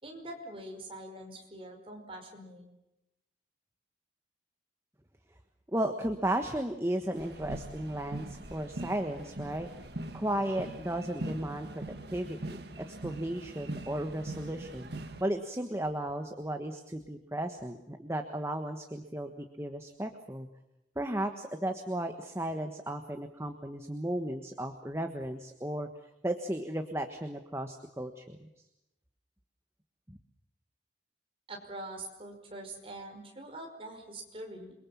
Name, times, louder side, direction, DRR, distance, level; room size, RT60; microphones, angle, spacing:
voice 1, 0.0-2.7 31.5-34.7, right 1 dB, 30° right, 2 dB, 5.3 m, -44 dB
voice 2, 5.7-9.7 10.1-11.8 12.1-12.6 12.9-14.9 15.2-20.5 20.9-25.9 26.2-28.4 30.1-30.2, right 1 dB, 15° right, 6 dB, 1.3 m, -34 dB
sound 1, 7.2-15.2, right 1 dB, 60° right, 1.8 m, -42 dB
28.5 x 22.5 x 7.2 m, 0.90 s
head